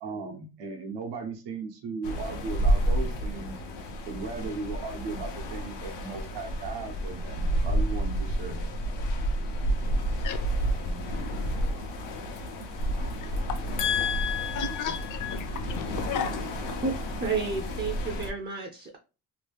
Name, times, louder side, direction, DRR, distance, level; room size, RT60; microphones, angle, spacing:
voice 1, 0.0-3.6 4.1-8.7 9.4-10.1 10.7-11.1 11.5-11.9 12.2-13.8 14.2-14.8 15.2-15.3 15.9-16.2 16.5-16.7, right 4 dB, 85° right, 0.9 m, -38 dB
sound 1, 2.0-18.3, right 1 dB, 85° left, 0.8 m, -30 dB
voice 2, 13.8-16.7, left 9 dB, 50° left, 0.6 m, -31 dB
voice 3, 17.2-19.0, right 4 dB, 25° right, 0.4 m, -31 dB
2.9 x 2.3 x 3.4 m
cardioid pair, 135°, 41 cm